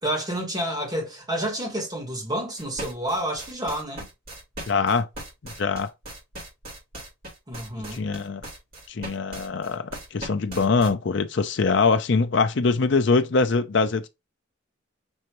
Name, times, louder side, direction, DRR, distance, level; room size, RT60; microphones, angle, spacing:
voice 1, 0.0-4.0 7.5-8.0, right 1 dB, 20° right, 1.6 m, -29 dB
sound 1, 2.6-10.9, right 1 dB, 45° right, 2.3 m, -38 dB
voice 2, 4.7-5.1 5.4-5.9 7.9-8.4 8.9-14.1, left 4 dB, 60° left, 0.5 m, -23 dB
6.4 x 2.8 x 3.0 m
head